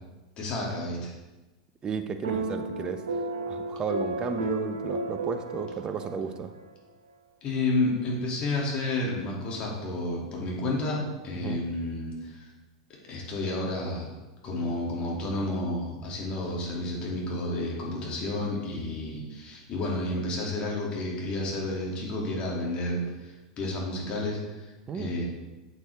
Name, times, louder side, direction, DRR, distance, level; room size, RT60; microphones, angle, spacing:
voice 1, 0.4-1.1 7.4-12.5 13.1-14.1 14.4-25.2, left 2 dB, 40° left, -3 dB, 2.7 m, -31 dB
voice 2, 1.8-3.0 3.5-6.5 11.3-11.6 24.9-25.1, right 6 dB, 30° right, 8 dB, 0.8 m, -33 dB
sound 1, 2.2-6.7, right 2 dB, 85° right, 1.4 m, -33 dB
8.2 x 7.7 x 3.6 m, 1.1 s
hypercardioid pair, 95°, 3 cm